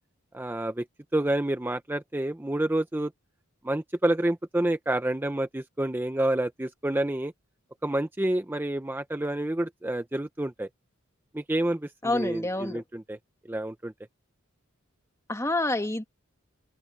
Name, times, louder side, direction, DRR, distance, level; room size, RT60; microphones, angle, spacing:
voice 1, 0.3-0.8 1.1-3.1 3.6-7.3 7.8-10.7 11.3-13.2 13.5-13.9, right 1 dB, 10° right, 0.5 m, -28 dB
voice 2, 12.0-12.8 15.3-16.0, left 2 dB, 15° left, 1.8 m, -28 dB
open air
head